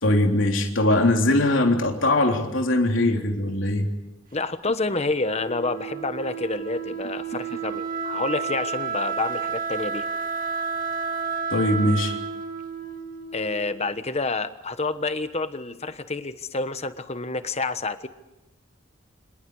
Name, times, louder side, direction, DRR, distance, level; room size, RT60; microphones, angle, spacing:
voice 1, 0.0-3.9 11.5-12.2, left 1 dB, 70° left, 2 dB, 3.5 m, -21 dB
voice 2, 4.3-10.1 13.3-18.1, left 3 dB, 30° left, 11 dB, 1.2 m, -28 dB
Wind instrument woodwind instrument, 5.2-13.9, right 5 dB, 45° right, 2.1 m, -31 dB
29.0 x 26.5 x 4.8 m, 0.98 s
head